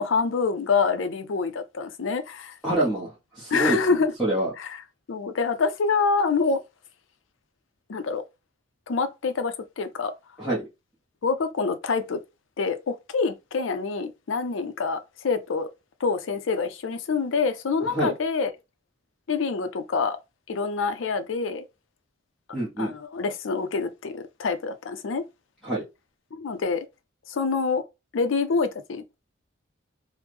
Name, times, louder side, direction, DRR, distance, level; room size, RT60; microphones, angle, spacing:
voice 1, 0.0-2.5 3.5-4.1 4.6-4.8 5.1-6.6 7.9-8.2 8.9-10.1 11.2-12.2 12.6-15.7 16.0-18.5 19.3-20.2 20.5-21.6 22.8-25.2 26.3-26.9 27.3-27.8 28.1-29.0, left 4 dB, 80° left, 0.5 m, -26 dB
voice 2, 2.6-3.8 4.2-4.5 10.4-10.6 17.9-18.1 22.5-22.9 25.6-25.8, right 1 dB, ahead, 1.0 m, -26 dB
3.1 x 2.1 x 3.2 m
head